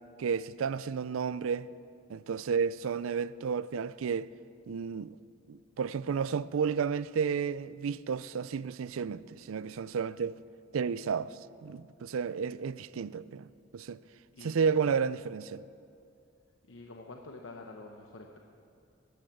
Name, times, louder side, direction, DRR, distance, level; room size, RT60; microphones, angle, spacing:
voice 1, 0.2-1.7 2.1-4.3 4.7-5.2 5.5-10.4 10.7-13.5 13.7-14.0 14.4-15.6, right 6 dB, 90° right, 0.4 m, -32 dB
voice 2, 16.7-18.4, left 3 dB, 75° left, 0.9 m, -47 dB
13.5 x 12.0 x 7.9 m
head